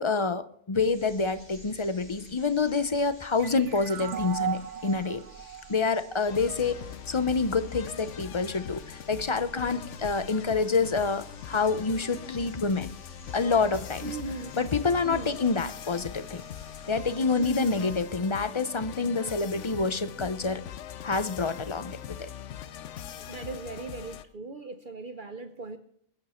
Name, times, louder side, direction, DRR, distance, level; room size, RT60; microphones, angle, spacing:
voice 1, 0.0-5.2 5.7-6.8 7.1-13.0 13.3-14.2 14.6-16.4 16.9-20.6 21.0-22.3, left 4 dB, 30° left, 12 dB, 0.7 m, -27 dB
sound 1, 0.8-18.0, right 1 dB, 50° left, 5.6 m, -53 dB
sound 2, 3.4-6.8, right 9 dB, 90° right, 1.4 m, -36 dB
sound 3, 6.3-24.2, left 10 dB, 85° left, 1.0 m, -41 dB
voice 2, 14.0-14.6 15.0-15.4 17.4-17.9 23.0-25.8, right 3 dB, 50° right, 8 dB, 1.0 m, -38 dB
22.5 x 8.9 x 4.4 m, 0.65 s
omnidirectional pair, 1.2 m